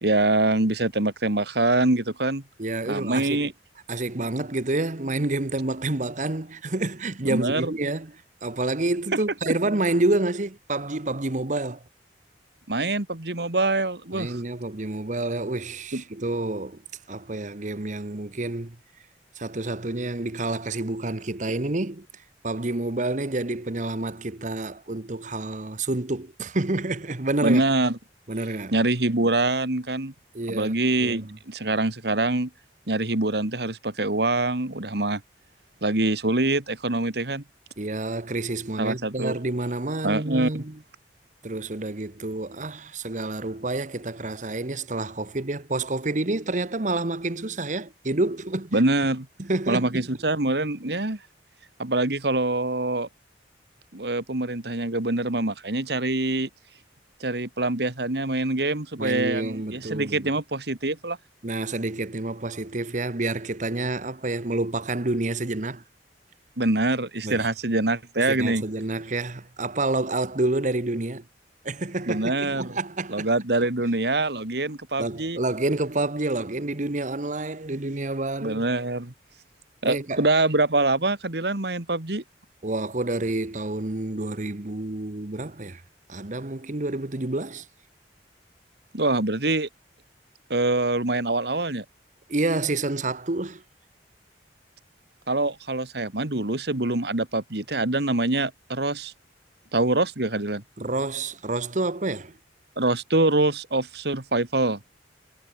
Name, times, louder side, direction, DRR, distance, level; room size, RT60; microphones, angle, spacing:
voice 1, 0.0-2.4 2.9-3.5 7.2-7.7 9.5-9.6 12.7-14.4 15.9-16.0 27.4-28.0 28.7-30.1 30.5-32.5 32.9-35.2 35.8-37.4 38.8-39.4 40.0-40.6 48.7-49.3 49.7-51.2 51.8-53.1 53.9-56.5 57.2-61.2 66.6-68.6 72.1-72.7 73.1-75.4 78.4-79.1 79.8-82.2 88.9-89.7 90.5-91.8 95.3-99.1 99.7-100.6 102.8-104.8, right 2 dB, 65° right, 2.1 m, -24 dB
voice 2, 2.6-3.5 3.9-8.1 8.4-11.8 14.1-16.8 17.1-18.8 19.4-22.1 22.4-27.6 28.3-28.7 30.3-30.8 31.0-31.4 37.8-40.8 41.4-48.8 49.4-50.1 59.0-60.3 61.4-65.8 67.2-67.5 68.2-71.2 71.6-73.3 75.0-78.6 79.8-80.2 82.6-85.8 86.1-87.6 92.3-93.6 100.8-102.4, right 2 dB, 45° right, 1.2 m, -28 dB
head